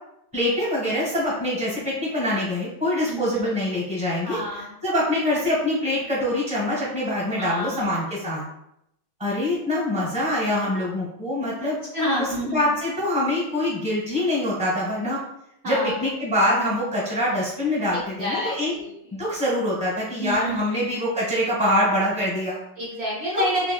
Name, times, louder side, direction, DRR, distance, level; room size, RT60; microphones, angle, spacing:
voice 1, 0.3-4.4 4.8-8.4 9.2-11.8 12.2-15.2 15.6-18.7 19.1-22.6 23.3-23.4, left 1 dB, 5° right, -6 dB, 1.0 m, -24 dB
voice 2, 3.1-3.6 4.2-4.7 7.4-7.9 11.6-12.6 15.6-16.0 17.9-18.9 20.2-20.8 22.8-23.7, equal, 70° right, -7 dB, 0.6 m, -29 dB
3.5 x 2.7 x 2.3 m, 0.79 s
omnidirectional pair, 2.1 m